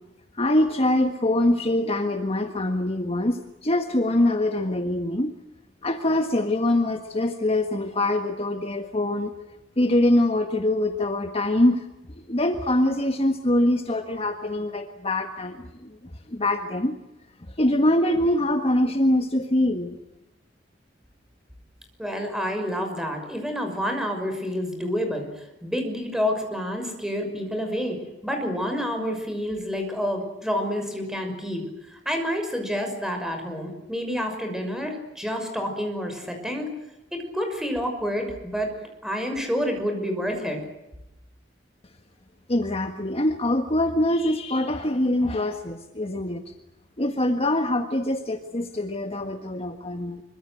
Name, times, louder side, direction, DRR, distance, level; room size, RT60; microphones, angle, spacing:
voice 1, 0.4-5.3 5.8-9.3 9.8-11.8 12.3-15.9 16.3-16.9 17.6-20.0 42.5-46.4 47.0-50.2, left 1 dB, 35° left, 6 dB, 1.7 m, -24 dB
voice 2, 22.0-31.6 31.9-36.7 37.1-40.6, equal, 5° right, 4 dB, 6.2 m, -29 dB
26.0 x 24.5 x 7.9 m, 0.95 s
head